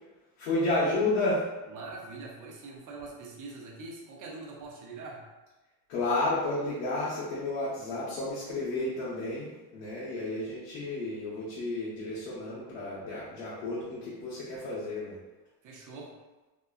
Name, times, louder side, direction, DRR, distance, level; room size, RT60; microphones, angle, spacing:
voice 1, 0.4-1.4 5.9-15.2, left 2 dB, 75° left, -8 dB, 1.0 m, -31 dB
voice 2, 1.7-5.2 15.6-16.1, right 3 dB, 40° right, -1 dB, 0.7 m, -43 dB
2.8 x 2.2 x 2.4 m, 1.1 s
supercardioid pair, 100°, 48 cm